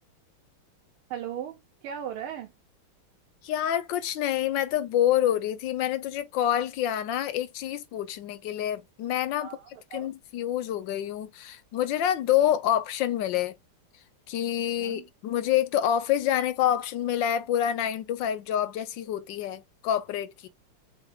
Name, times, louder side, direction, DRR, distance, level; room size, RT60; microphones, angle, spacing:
voice 1, 1.1-2.5 9.4-10.1 14.8-15.1, right 9 dB, 85° right, 1.6 m, -38 dB
voice 2, 3.4-9.5 9.9-13.6 14.3-20.5, left 11 dB, 70° left, 1.2 m, -27 dB
7.7 x 2.9 x 2.3 m
omnidirectional pair, 2.3 m